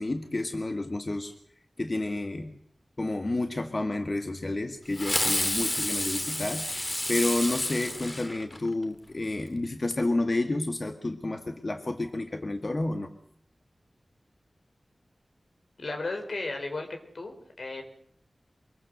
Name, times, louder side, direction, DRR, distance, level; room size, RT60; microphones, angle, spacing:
voice 1, 0.0-1.3 1.8-2.5 3.0-13.1, left 2 dB, 45° left, 5 dB, 1.9 m, -30 dB
Fireworks, 4.9-8.8, left 1 dB, 25° left, 2.2 m, -30 dB
voice 2, 15.8-16.9 17.1-17.8, left 2 dB, 80° left, 4 dB, 4.5 m, -34 dB
25.0 x 22.5 x 6.5 m, 0.64 s
wide cardioid pair, 70°, 0 cm